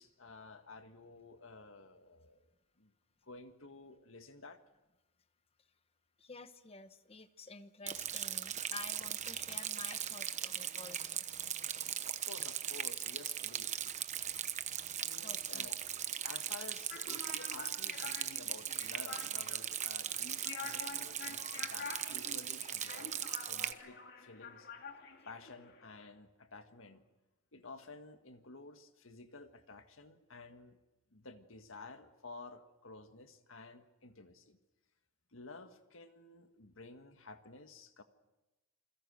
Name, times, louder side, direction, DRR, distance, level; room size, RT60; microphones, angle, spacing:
voice 1, 0.0-2.5 2.8-2.9 3.2-4.6 12.0-13.8 15.0-24.7 25.3-27.0 27.5-30.8 31.1-34.6 35.3-38.0, left 3 dB, 75° left, 8 dB, 1.8 m, -53 dB
voice 2, 6.2-11.2 15.2-15.7, left 4 dB, 30° left, 11 dB, 1.1 m, -51 dB
Rain, 7.9-23.7, right 9 dB, 35° right, 1.0 m, -39 dB
sound 1, 16.9-26.1, left 5 dB, 55° left, 2.5 m, -48 dB
28.0 x 22.0 x 6.6 m, 1.0 s
head